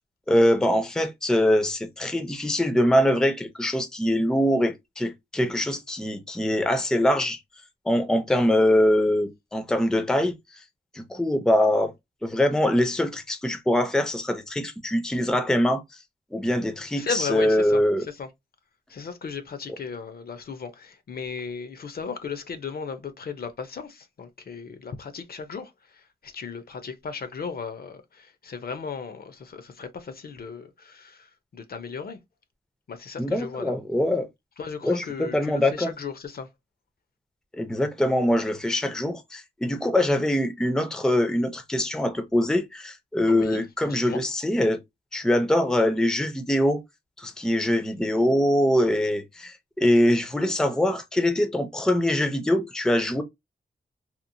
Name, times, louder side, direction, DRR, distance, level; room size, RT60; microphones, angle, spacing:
voice 1, 0.3-7.4 7.9-10.4 10.9-11.9 12.2-15.8 16.3-18.0 33.2-34.3 34.8-35.0 35.3-35.9 37.6-44.8 45.1-46.8 47.2-53.2, left 1 dB, 5° left, 0.4 m, -23 dB
voice 2, 17.0-18.3 18.9-32.2 32.9-33.8 34.6-36.5 43.3-44.2, left 5 dB, 55° left, 0.5 m, -36 dB
2.9 x 2.0 x 2.5 m
wide cardioid pair, 115°, 18 cm